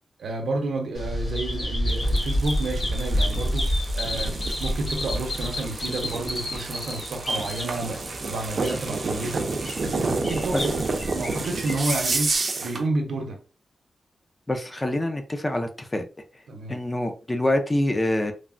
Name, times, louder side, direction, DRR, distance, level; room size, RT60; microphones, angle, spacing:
voice 1, 0.2-9.5 9.8-10.8 11.1-12.3 12.6-13.4 16.5-16.8, right 2 dB, 90° right, 0.7 m, -30 dB
Bird vocalization bird call bird song, 0.9-12.4, equal, 45° left, 1.3 m, -29 dB
sound 1, 1.9-12.9, right 3 dB, 45° right, 0.5 m, -30 dB
voice 2, 14.5-16.0 16.7-18.3, left 1 dB, 20° left, 0.4 m, -25 dB
3.2 x 2.0 x 2.4 m
wide cardioid pair, 150°, 0 cm